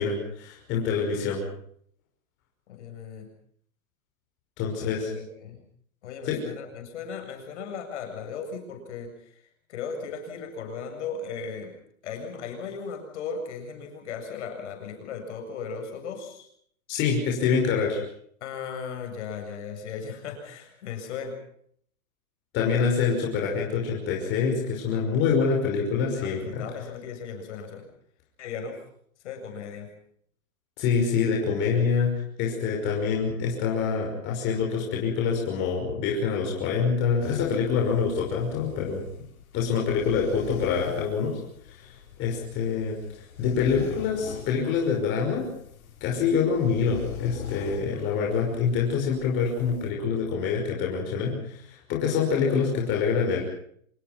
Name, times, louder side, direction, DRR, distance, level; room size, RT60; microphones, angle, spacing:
voice 1, 0.0-1.4 4.6-5.1 6.3-6.4 16.9-18.0 22.5-26.6 30.8-32.1 32.4-39.0 39.5-41.3 41.7-41.9 42.2-43.0 43.4-45.5 46.0-53.4, left 6 dB, 25° left, -1 dB, 5.7 m, -26 dB
voice 2, 2.7-3.3 4.8-5.6 6.0-9.1 9.7-11.7 12.0-16.5 18.4-21.3 26.2-27.9 28.4-28.8 29.2-29.9, left 6 dB, 55° left, 4 dB, 7.7 m, -36 dB
sound 1, 37.2-49.9, left 8 dB, 80° left, 6.1 m, -42 dB
26.5 x 21.0 x 6.1 m, 0.64 s
hypercardioid pair, 160°, 42 cm